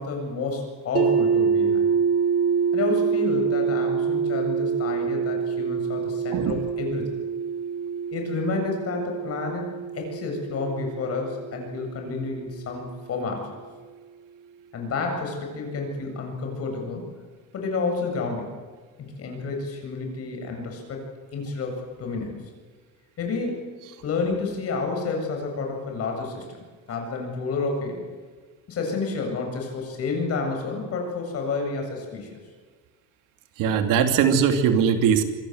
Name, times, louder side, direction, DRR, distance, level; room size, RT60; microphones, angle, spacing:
voice 1, 0.0-1.9 2.7-7.1 8.1-13.5 14.7-17.0 17.5-18.5 19.0-21.0 21.3-22.4 23.2-23.7 24.0-28.0 28.7-32.4, left 4 dB, 45° left, 3 dB, 7.7 m, -30 dB
sound 1, 1.0-12.9, right 6 dB, 40° right, 3.5 m, -26 dB
voice 2, 33.6-35.2, right 7 dB, 70° right, 6 dB, 3.1 m, -20 dB
26.5 x 23.0 x 8.1 m, 1.5 s
cardioid pair, 140°, 34 cm